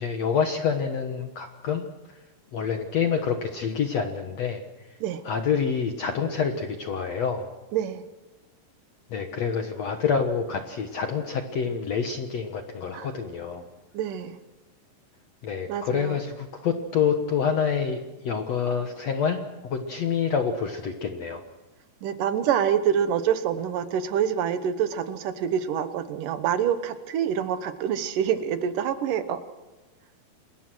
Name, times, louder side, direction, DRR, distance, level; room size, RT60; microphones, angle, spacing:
voice 1, 0.0-1.8 2.5-4.6 5.2-7.5 9.1-13.6 15.4-21.4, left 6 dB, 75° left, 6 dB, 1.5 m, -27 dB
voice 2, 7.7-8.0 12.9-13.1 13.9-14.4 15.7-16.2 22.0-29.4, right 9 dB, 70° right, 11 dB, 2.2 m, -26 dB
28.5 x 20.5 x 6.2 m, 1.1 s
omnidirectional pair, 5.1 m